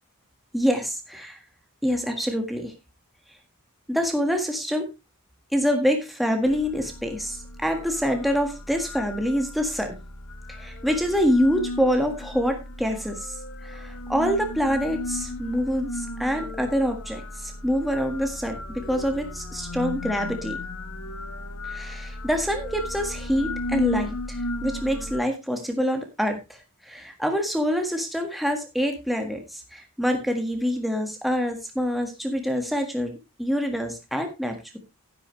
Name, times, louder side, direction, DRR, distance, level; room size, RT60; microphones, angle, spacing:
voice 1, 0.5-1.4 1.8-2.7 3.9-4.8 5.5-9.9 10.5-20.6 21.7-26.6 26.9-34.8, equal, ahead, 3 dB, 1.6 m, -26 dB
sound 1, 6.4-25.2, left 1 dB, 70° left, 1.4 m, -35 dB
11.5 x 10.5 x 3.2 m, 0.25 s
head